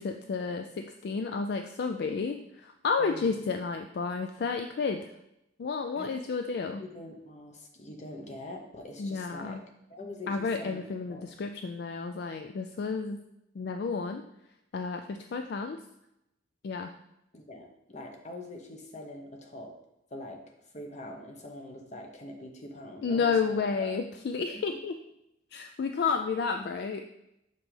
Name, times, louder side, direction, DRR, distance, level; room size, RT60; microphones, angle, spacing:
voice 1, 0.0-5.1 5.6-6.8 9.0-9.6 10.3-13.2 13.6-14.2 14.7-15.8 16.6-16.9 23.0-25.0 25.5-27.0, left 5 dB, 60° left, 6 dB, 0.3 m, -31 dB
voice 2, 3.0-3.4 6.0-6.3 6.8-9.6 9.9-10.8 11.1-11.3 17.3-19.7 20.1-20.4 20.7-23.9 26.1-26.2 26.5-26.6, left 1 dB, 40° left, 3 dB, 0.9 m, -44 dB
6.0 x 5.4 x 3.3 m, 0.85 s
head